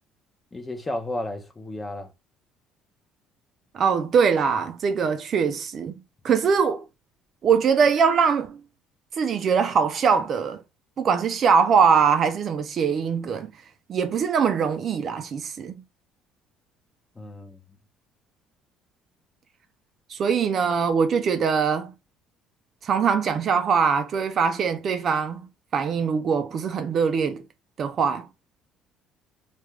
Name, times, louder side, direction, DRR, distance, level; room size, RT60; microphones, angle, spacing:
voice 1, 0.5-2.1 17.2-17.6, left 1 dB, 15° left, 0.5 m, -33 dB
voice 2, 3.7-6.8 7.4-8.6 9.2-10.6 11.0-13.5 13.9-15.7 20.1-21.9 22.8-25.4 25.7-27.4 27.8-28.3, right 6 dB, 45° right, 0.4 m, -22 dB
2.4 x 2.2 x 3.1 m
cardioid pair, 115°, 0 cm